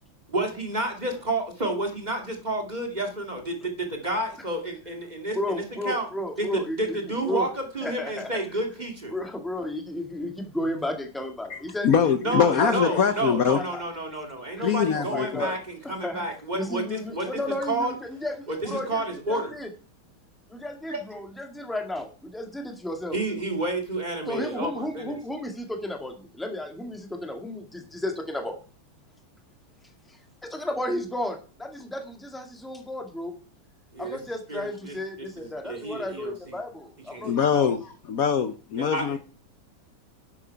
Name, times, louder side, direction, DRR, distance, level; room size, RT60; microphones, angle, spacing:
voice 1, 0.3-6.1 6.4-9.1 12.2-17.3 17.7-17.9 18.5-19.5 20.9-21.0 23.1-25.2 33.9-34.2 34.5-36.6 37.1-37.4 38.8-39.2, right 2 dB, 20° right, 2.1 m, -30 dB
voice 2, 5.4-7.0 7.3-7.5 7.8-8.4 9.1-11.9 12.3-12.7 13.5-13.8 14.6-15.6 15.8-16.3 16.5-18.3 18.6-19.0 19.3-19.7 20.5-23.2 24.3-28.6 30.1-33.3 34.0-37.7, left 1 dB, ahead, 1.7 m, -33 dB
voice 3, 11.5-13.6 14.6-15.5 37.2-37.8 38.1-39.2, left 7 dB, 60° left, 0.9 m, -23 dB
11.0 x 7.5 x 5.7 m
omnidirectional pair, 2.3 m